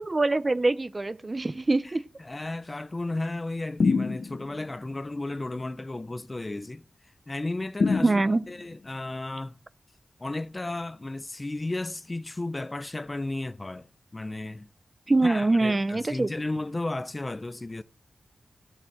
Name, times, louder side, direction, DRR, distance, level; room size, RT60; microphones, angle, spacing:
voice 1, 0.0-2.0 8.0-8.4 15.1-16.3, right 2 dB, 35° right, 0.7 m, -24 dB
voice 2, 1.8-6.8 7.3-8.1 8.5-9.6 10.2-13.9 14.1-14.7 15.2-17.8, left 2 dB, 30° left, 0.6 m, -34 dB
sound 1, 3.8-4.6 7.8-8.7, left 4 dB, 70° left, 0.9 m, -26 dB
14.5 x 7.2 x 4.6 m
wide cardioid pair, 75°, 0 cm